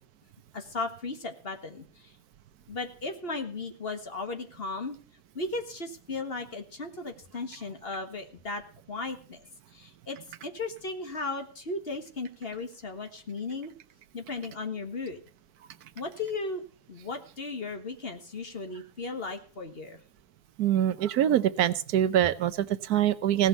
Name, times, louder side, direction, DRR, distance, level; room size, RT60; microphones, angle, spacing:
voice 1, 0.5-2.1 2.7-5.0 5.4-8.6 8.9-9.5 9.7-10.2 10.4-13.7 14.1-15.2 16.0-16.6 16.9-20.0, left 3 dB, 40° left, 5 dB, 1.7 m, -36 dB
voice 2, 20.6-23.5, right 11 dB, 90° right, 12 dB, 1.3 m, -24 dB
16.5 x 6.3 x 8.1 m, 0.41 s
omnidirectional pair, 1.6 m